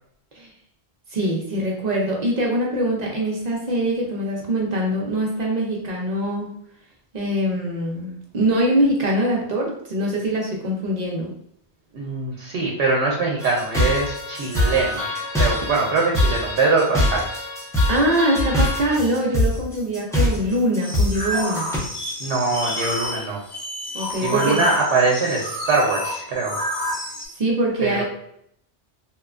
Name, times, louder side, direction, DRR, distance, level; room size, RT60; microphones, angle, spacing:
voice 1, 1.1-6.5 7.1-11.3 17.9-21.7 23.9-24.6 27.4-28.0, right 1 dB, 50° right, -2 dB, 0.5 m, -23 dB
voice 2, 11.9-15.0 15.4-17.2 22.2-23.4 24.2-26.6 27.8-28.0, right 3 dB, 85° right, -2 dB, 0.9 m, -22 dB
sound 1, 13.4-21.8, left 1 dB, 5° left, 0.3 m, -23 dB
sound 2, 20.8-27.3, left 1 dB, 40° left, 0.7 m, -29 dB
3.0 x 2.1 x 2.3 m, 0.72 s
omnidirectional pair, 1.1 m